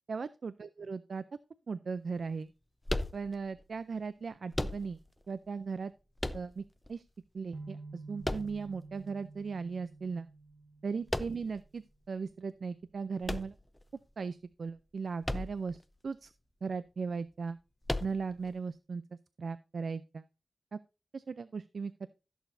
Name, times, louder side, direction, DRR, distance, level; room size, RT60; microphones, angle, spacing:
voice 1, 0.1-1.2 1.7-2.5 3.1-5.0 5.3-5.9 6.3-6.6 6.9-7.0 7.3-10.3 10.8-13.6 14.2-16.3 16.6-17.6 18.0-19.0 19.4-20.2 20.7-20.8 21.1-22.1, right 5 dB, 75° right, 14 dB, 0.4 m, -37 dB
sound 1, 2.9-3.6 4.5-5.2 6.2-6.9 8.2-9.0 11.1-11.7 13.2-14.1 15.2-15.8 16.1-16.2 17.8-18.5, left 1 dB, 15° left, 0.6 m, -36 dB
sound 2, 7.5-11.5, right 3 dB, 55° right, 0.8 m, -49 dB
15.5 x 7.0 x 2.6 m, 0.30 s
cardioid pair, 65°, 0 cm